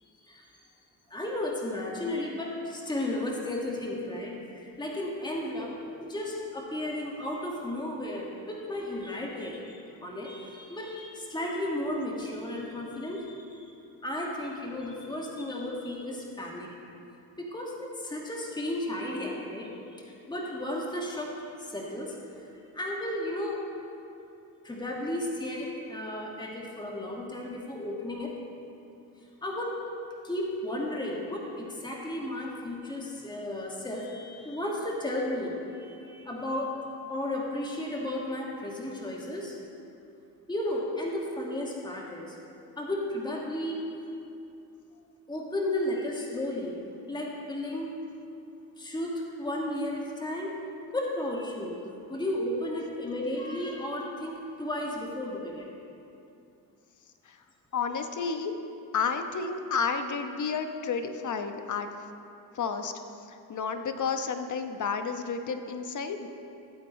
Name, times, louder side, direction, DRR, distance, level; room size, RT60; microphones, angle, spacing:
voice 1, 1.1-5.7 6.0-13.7 14.0-16.7 17.4-21.3 21.6-22.2 22.7-23.6 24.6-28.3 29.4-29.8 30.2-36.8 37.1-39.6 40.5-42.4 42.8-43.8 45.3-46.8 47.1-47.9 48.8-50.6 50.9-51.8 52.1-55.7, left 1 dB, 10° left, -2 dB, 1.9 m, -34 dB
voice 2, 57.7-58.5 58.9-61.9 62.5-62.9 63.3-66.3, left 5 dB, 35° left, 7 dB, 1.0 m, -31 dB
16.0 x 8.6 x 3.2 m, 2.7 s
hypercardioid pair, 55°, 49 cm